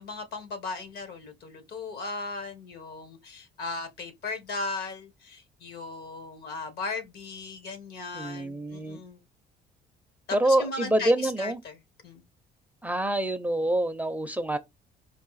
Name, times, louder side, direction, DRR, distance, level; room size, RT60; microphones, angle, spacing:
voice 1, 0.0-9.2 10.3-12.2, left 3 dB, 70° left, 1.4 m, -37 dB
voice 2, 8.2-9.0 10.3-11.6 12.8-14.6, right 1 dB, 10° right, 0.5 m, -26 dB
4.7 x 2.5 x 4.0 m
cardioid pair, 110°, 17 cm